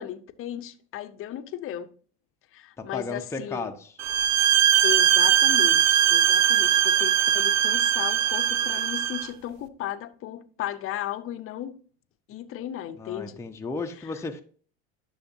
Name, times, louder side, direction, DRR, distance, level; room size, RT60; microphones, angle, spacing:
voice 1, 0.0-1.9 2.5-3.7 4.8-11.8 12.3-13.4, left 11 dB, 40° left, 0.8 m, -35 dB
voice 2, 2.8-4.0 13.0-14.4, left 3 dB, 10° left, 0.8 m, -34 dB
sound 1, 4.0-9.3, right 10 dB, 50° right, 0.8 m, -21 dB
10.0 x 6.4 x 2.7 m
hypercardioid pair, 85°, 34 cm